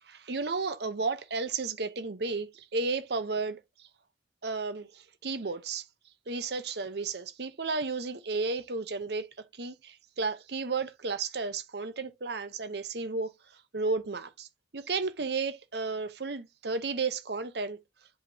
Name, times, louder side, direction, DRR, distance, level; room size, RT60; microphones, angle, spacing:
voice 1, 0.0-3.9 4.4-5.9 6.3-9.3 9.5-13.3 13.7-14.5 14.7-17.8, right 4 dB, 60° right, 0.8 m, -33 dB
7.9 x 5.0 x 2.7 m
head